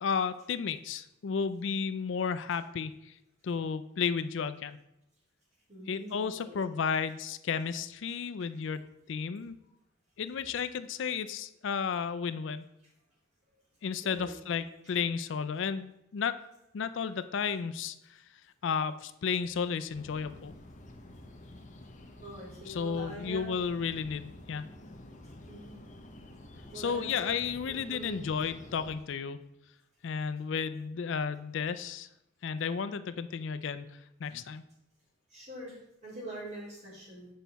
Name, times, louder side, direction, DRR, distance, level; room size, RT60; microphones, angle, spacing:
voice 1, 0.0-3.2 3.4-4.8 5.9-9.6 10.2-12.6 13.8-16.4 16.7-18.0 18.6-20.5 22.7-24.7 26.7-29.4 30.0-32.1 32.4-34.6, left 6 dB, 65° left, 11 dB, 0.4 m, -33 dB
voice 2, 5.7-6.8 14.0-14.5 22.2-23.6 25.5-25.7 26.7-27.1 27.7-28.5 35.3-35.8 36.0-37.3, right 1 dB, 35° right, -5 dB, 3.1 m, -44 dB
sound 1, 19.9-29.0, left 1 dB, 35° left, 0.7 m, -50 dB
8.1 x 5.6 x 4.0 m, 0.83 s
head